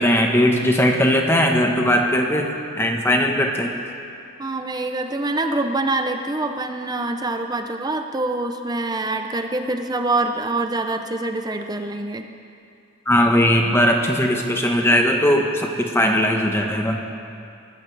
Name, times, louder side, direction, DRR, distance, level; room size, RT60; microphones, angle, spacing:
voice 1, 0.0-3.7 13.1-17.0, equal, 10° left, 2 dB, 1.0 m, -19 dB
voice 2, 4.4-12.3, right 2 dB, 20° right, 6 dB, 0.5 m, -25 dB
20.0 x 14.0 x 3.3 m, 2.5 s
head